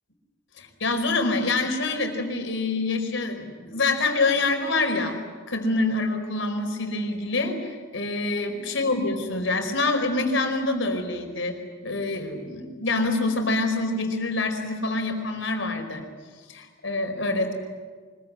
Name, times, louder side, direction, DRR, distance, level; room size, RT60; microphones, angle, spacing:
voice 1, 0.6-5.2 5.5-11.6 11.8-16.0 16.4-17.5, left 2 dB, 70° left, 4 dB, 4.8 m, -26 dB
25.0 x 22.5 x 9.7 m, 1.5 s
head